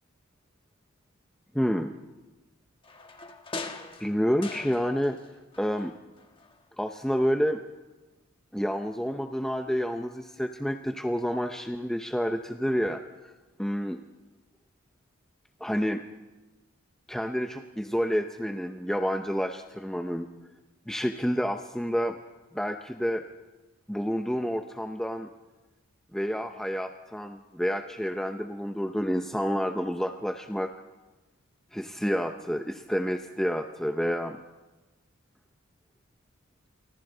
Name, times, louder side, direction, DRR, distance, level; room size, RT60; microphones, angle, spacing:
voice 1, 1.5-1.9 4.0-5.2 5.6-6.0 6.8-7.6 8.5-13.3 13.6-14.0 15.6-16.0 17.1-20.3 20.9-22.2 22.5-23.2 23.9-25.3 26.1-30.7 31.7-34.4, equal, ahead, 5 dB, 0.7 m, -29 dB
sound 1, 2.8-5.3 5.5-6.6 7.0-7.1, left 3 dB, 25° left, 1.4 m, -41 dB
30.0 x 24.5 x 4.0 m, 1.1 s
head